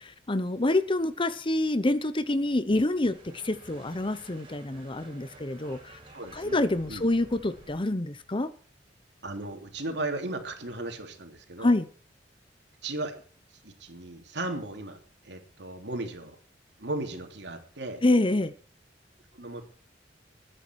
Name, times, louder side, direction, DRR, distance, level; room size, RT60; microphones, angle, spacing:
voice 1, 0.0-6.0 6.3-8.5 11.6-11.9 18.0-18.5, left 2 dB, 30° left, 0.9 m, -27 dB
sound 1, 2.7-7.9, right 1 dB, 30° right, 6.5 m, -52 dB
voice 2, 6.1-6.6 6.9-7.1 9.2-11.7 12.8-13.2 13.5-15.0 15.2-16.4 16.8-18.0 19.3-19.6, right 2 dB, 70° right, 3.4 m, -36 dB
20.5 x 10.0 x 4.7 m
head